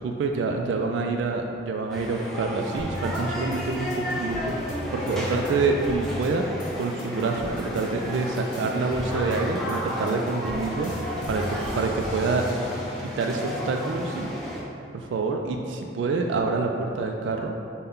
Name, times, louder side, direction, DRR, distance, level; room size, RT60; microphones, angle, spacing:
voice 1, 0.0-6.5 6.8-12.6 13.2-14.3 14.9-17.5, right 3 dB, 90° right, 3 dB, 0.3 m, -27 dB
sound 1, 1.9-14.6, equal, ahead, 0.6 m, -33 dB
sound 2, 2.8-7.8 8.1-13.3 13.8-14.8, left 1 dB, 40° left, 0.7 m, -37 dB
5.4 x 2.2 x 3.6 m, 2.5 s
head